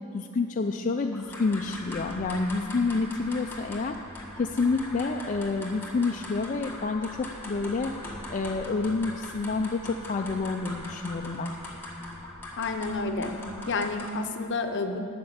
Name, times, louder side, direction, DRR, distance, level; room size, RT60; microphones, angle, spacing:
voice 1, 0.1-4.0 4.4-7.9 8.3-11.5, left 3 dB, 40° left, 3 dB, 0.4 m, -28 dB
sound 1, 1.1-14.3, left 1 dB, 10° left, 1.6 m, -41 dB
voice 2, 12.6-13.3 13.7-15.0, left 3 dB, 55° left, 6 dB, 0.8 m, -29 dB
9.5 x 6.7 x 8.9 m, 2.4 s
head